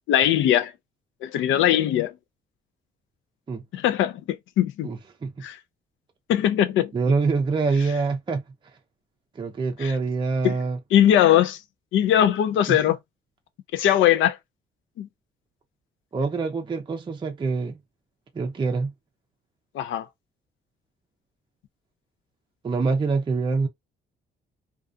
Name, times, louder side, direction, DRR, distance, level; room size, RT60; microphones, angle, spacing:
voice 1, 0.1-0.7 1.2-2.1 3.7-4.2 4.6-4.9 5.4-5.6 6.3-6.9 9.8-10.0 10.4-10.6 10.9-11.6 11.9-13.0 13.7-14.4 15.0-15.1 19.7-20.1, left 11 dB, 75° left, 0.4 m, -20 dB
voice 2, 4.8-5.3 6.9-8.4 9.4-10.8 12.7-12.8 16.1-17.8 18.3-18.9 22.6-23.7, right 4 dB, 25° right, 0.5 m, -25 dB
2.4 x 2.2 x 2.5 m
cardioid pair, 90°, 20 cm